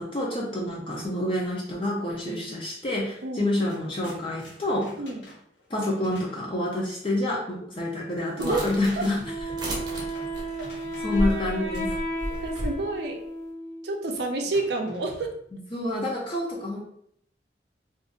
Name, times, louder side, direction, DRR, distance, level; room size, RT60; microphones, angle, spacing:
voice 1, 0.0-4.9 5.7-9.2 11.0-11.9 15.7-16.8, left 1 dB, 30° left, -3 dB, 0.5 m, -28 dB
voice 2, 2.2-2.6 3.2-3.5 5.0-5.3 8.4-8.6 9.0-9.1 12.4-13.2 13.8-15.3, right 2 dB, 65° right, 2 dB, 0.5 m, -29 dB
sound 1, 3.0-3.1 3.4-6.5 8.2-11.4 11.7-12.8 14.5-15.4, equal, 80° left, 1.0 m, -47 dB
sound 2, 8.4-12.8, equal, 25° right, 0.7 m, -33 dB
Wind instrument woodwind instrument, 9.2-14.0, right 1 dB, 50° left, 0.9 m, -34 dB
2.5 x 2.5 x 3.7 m, 0.67 s
head